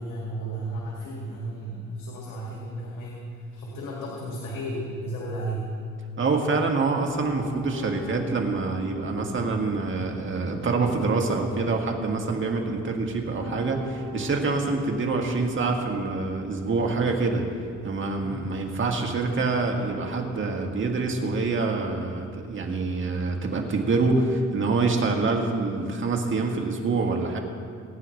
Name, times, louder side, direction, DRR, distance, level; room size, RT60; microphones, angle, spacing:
voice 1, 0.0-5.7 18.2-18.5, right 1 dB, 90° left, -4 dB, 2.3 m, -34 dB
voice 2, 6.2-17.4 17.8-27.4, right 3 dB, 40° right, 2 dB, 2.0 m, -26 dB
Piano, 7.1-24.2, left 3 dB, 20° left, 3.5 m, -42 dB
23.5 x 9.7 x 3.3 m, 2.4 s
cardioid pair, 90°, 30 cm